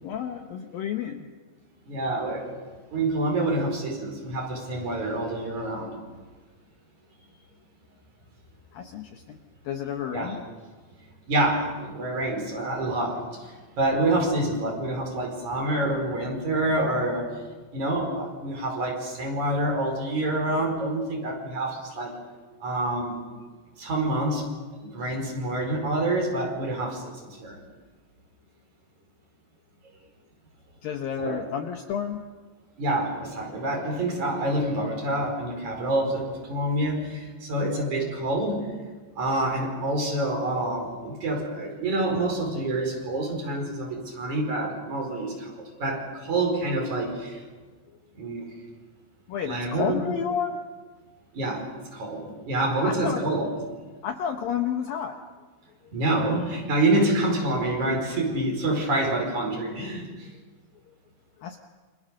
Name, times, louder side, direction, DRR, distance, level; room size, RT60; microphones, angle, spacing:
voice 1, 0.0-1.3 8.7-9.4 9.6-10.4 30.8-32.2 37.6-37.7 47.9-48.0 49.3-50.6 52.8-53.3 54.0-55.2 55.8-55.9 60.9-61.0 61.4-61.6, left 8 dB, 70° left, 5 dB, 2.4 m, -31 dB
voice 2, 1.9-2.7 2.9-5.9 10.1-10.3 11.3-17.2 17.7-22.1 22.6-23.1 23.8-24.5 24.8-27.6 31.2-31.4 32.8-38.6 39.2-45.5 45.8-47.4 48.2-48.5 49.5-50.0 51.3-51.7 51.9-53.5 55.9-60.1, right 1 dB, 40° right, 1 dB, 6.1 m, -27 dB
28.5 x 27.5 x 6.6 m, 1.4 s
omnidirectional pair, 5.2 m